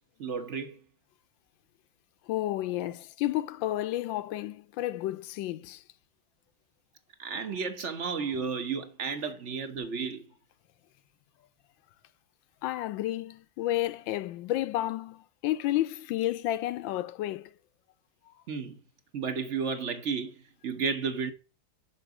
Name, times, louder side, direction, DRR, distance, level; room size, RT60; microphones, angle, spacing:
voice 1, 0.2-0.8 7.2-10.2 18.5-18.8 19.1-20.3 20.6-21.3, right 5 dB, 40° right, 1.4 m, -32 dB
voice 2, 2.3-5.8 12.6-17.5, left 14 dB, 75° left, 1.4 m, -31 dB
7.9 x 6.0 x 7.1 m
omnidirectional pair, 2.1 m